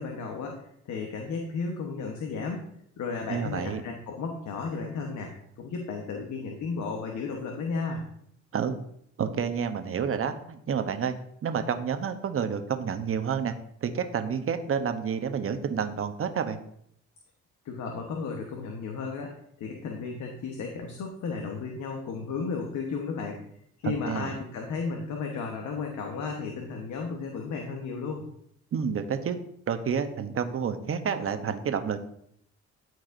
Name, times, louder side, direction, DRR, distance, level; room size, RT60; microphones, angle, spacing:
voice 1, 0.0-2.7 3.0-8.0 17.6-23.4 23.8-28.2, left 4 dB, 70° left, 1 dB, 1.1 m, -34 dB
voice 2, 3.3-3.8 8.5-8.7 9.2-11.1 11.4-13.5 13.8-16.6 23.8-24.4 28.7-29.4 29.7-32.0, right 7 dB, 45° right, 8 dB, 0.9 m, -29 dB
13.0 x 4.7 x 2.6 m, 0.71 s
cardioid pair, 90°, 30 cm